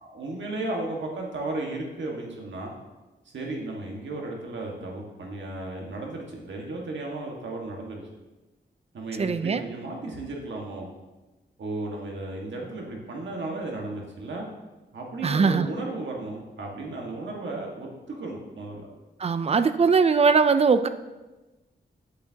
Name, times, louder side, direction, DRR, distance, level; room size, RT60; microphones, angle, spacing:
voice 1, 0.0-2.7 3.2-8.0 8.9-10.9 11.6-14.5 14.9-18.9, right 2 dB, 85° right, -1 dB, 1.6 m, -34 dB
voice 2, 9.2-9.6 15.2-15.7 19.2-20.9, right 5 dB, 35° right, 11 dB, 0.4 m, -20 dB
8.6 x 8.2 x 2.8 m, 1.1 s
wide cardioid pair, 170°, 19 cm